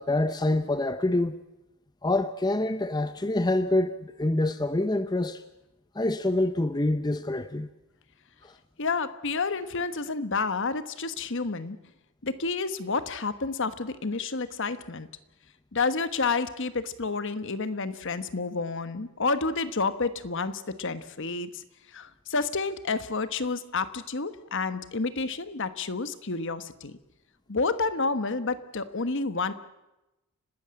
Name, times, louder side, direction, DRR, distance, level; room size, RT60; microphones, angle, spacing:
voice 1, 0.0-1.4 2.0-5.4 5.9-7.7 8.4-8.5, left 2 dB, 20° left, 0.7 m, -26 dB
voice 2, 8.8-11.8 12.2-15.1 15.7-21.6 21.9-27.0 27.5-29.5, left 4 dB, 55° left, 1.3 m, -30 dB
30.0 x 13.0 x 8.8 m
head